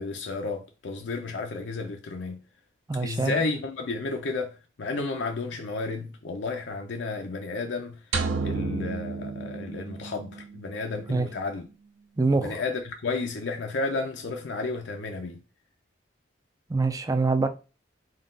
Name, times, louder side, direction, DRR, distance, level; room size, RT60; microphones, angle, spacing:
voice 1, 0.0-2.4 3.0-4.5 4.8-8.0 8.4-11.7 12.4-15.4, left 3 dB, 75° left, 0.5 m, -32 dB
voice 2, 2.9-3.4 11.1-11.3 12.2-12.6 16.7-17.5, right 3 dB, 20° right, 0.3 m, -24 dB
sound 1, 8.1-10.4, right 4 dB, 80° right, 0.6 m, -30 dB
3.8 x 2.4 x 3.8 m
head